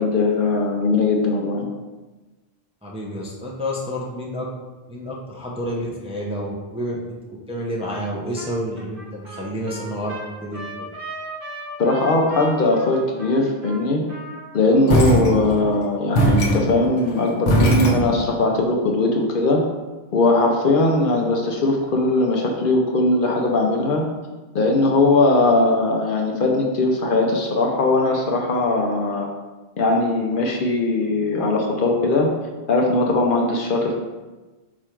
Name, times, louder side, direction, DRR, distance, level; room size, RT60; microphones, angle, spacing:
voice 1, 0.0-1.7 11.8-14.0 14.5-19.6 20.1-24.0 24.5-29.3 29.8-32.3 32.7-33.9, left 2 dB, 60° left, 1 dB, 0.7 m, -19 dB
voice 2, 2.8-4.5 4.9-7.0 7.5-10.9, equal, 10° right, -4 dB, 0.5 m, -29 dB
Trumpet, 7.9-8.1 8.4-14.6, right 2 dB, 55° right, 1.1 m, -37 dB
sound 1, 14.9-15.8 16.1-18.5, right 1 dB, 80° left, 1.0 m, -20 dB
5.0 x 2.4 x 4.4 m, 1.2 s
omnidirectional pair, 1.1 m